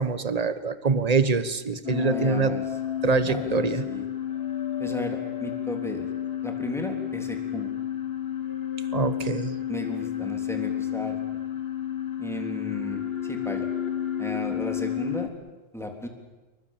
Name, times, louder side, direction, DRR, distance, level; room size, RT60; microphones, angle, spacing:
voice 1, 0.0-2.6 3.0-3.9 8.9-9.6, right 4 dB, 35° right, 12 dB, 1.3 m, -25 dB
sound 1, 1.8-15.3, left 10 dB, 55° left, 1.9 m, -31 dB
voice 2, 1.9-2.6 3.3-4.0 4.8-6.1 6.4-7.7 9.7-11.2 12.2-13.7 14.2-15.3 15.7-16.1, left 1 dB, ahead, 3 dB, 3.5 m, -35 dB
28.0 x 23.5 x 7.4 m, 1.1 s
omnidirectional pair, 1.2 m